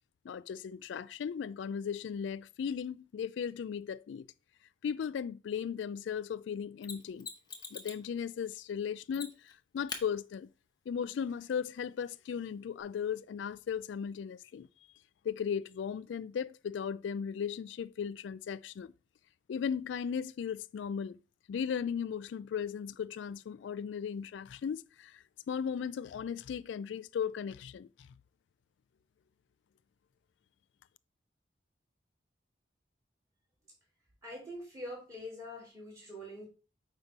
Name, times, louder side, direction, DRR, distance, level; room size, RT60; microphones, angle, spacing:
voice 1, 0.2-4.3 4.8-7.3 7.7-10.5 10.9-14.7 15.2-18.9 19.5-21.2 21.5-28.1, left 7 dB, 75° left, 0.3 m, -37 dB
Mechanisms, 6.8-8.1 9.1-9.5 9.9-10.0 12.8-12.9, left 5 dB, 20° left, 1.0 m, -43 dB
voice 2, 34.2-36.5, equal, 20° right, 4.1 m, -44 dB
8.8 x 3.0 x 5.4 m
head